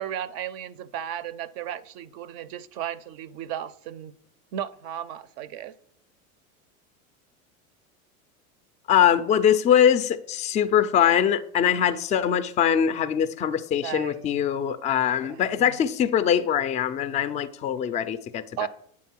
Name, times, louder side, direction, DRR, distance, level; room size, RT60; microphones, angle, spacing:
voice 1, 0.0-4.1 4.5-5.7 13.8-14.5 15.2-15.7 18.6-18.7, right 10 dB, 50° right, 0.5 m, -35 dB
voice 2, 8.9-18.7, left 9 dB, 20° left, 0.3 m, -22 dB
8.5 x 3.7 x 5.9 m
hypercardioid pair, 100°, 43 cm